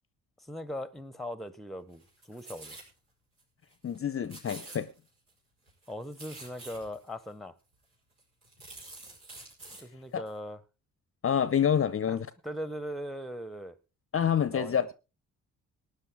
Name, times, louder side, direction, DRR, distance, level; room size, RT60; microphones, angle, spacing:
voice 1, 0.4-2.8 5.9-7.6 9.8-10.6 12.1-13.8 14.3-14.8, equal, ahead, 1.0 m, -40 dB
sound 1, 1.9-2.9 3.4-3.5 3.7-4.0 4.2-5.3 5.7-7.1 7.7-7.8 8.2-9.8 10.3-10.4, right 2 dB, 75° right, 5.0 m, -48 dB
voice 2, 3.8-4.9 10.1-10.2 11.2-12.3 14.1-14.9, left 8 dB, 30° left, 0.8 m, -27 dB
19.0 x 9.7 x 3.6 m
figure-of-eight pair, 40°, 43 cm